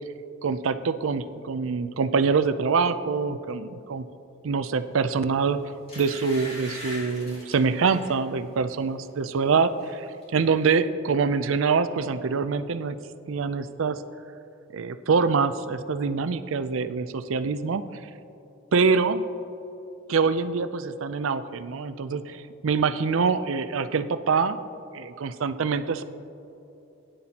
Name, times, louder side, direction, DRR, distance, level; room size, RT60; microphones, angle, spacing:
voice 1, 0.4-4.0 4.4-5.6 6.0-10.1 10.3-13.0 13.3-14.0 14.7-17.8 18.7-19.2 20.1-24.6 24.9-26.0, right 5 dB, 80° right, 12 dB, 0.5 m, -25 dB
sound 1, 5.2-5.4 5.9-8.2 8.7-8.9 9.2-9.9 10.2-10.3, left 1 dB, 30° left, 2.4 m, -41 dB
17.0 x 10.0 x 2.9 m, 2.9 s
head